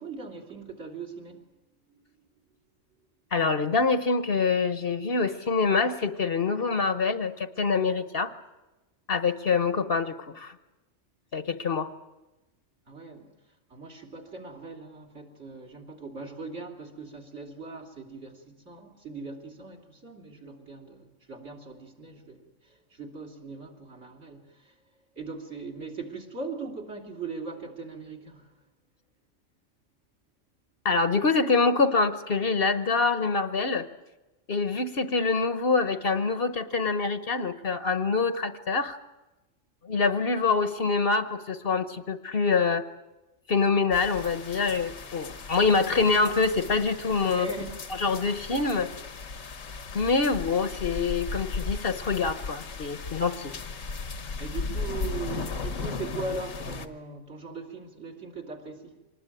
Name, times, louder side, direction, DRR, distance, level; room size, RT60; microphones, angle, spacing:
voice 1, 0.0-1.5 1.9-2.0 12.9-13.4 13.7-24.7 25.1-28.5 47.2-47.8 54.4-59.1, right 3 dB, 60° right, 1 dB, 3.4 m, -40 dB
voice 2, 3.3-8.3 9.1-10.5 11.3-11.9 30.8-33.9 34.5-39.0 39.8-42.8 43.5-47.5 48.0-48.9 49.9-53.5, left 4 dB, 50° left, 11 dB, 1.2 m, -25 dB
sound 1, 43.9-56.9, left 4 dB, 80° left, 1.7 m, -36 dB
25.5 x 20.0 x 9.1 m, 1.1 s
omnidirectional pair, 1.3 m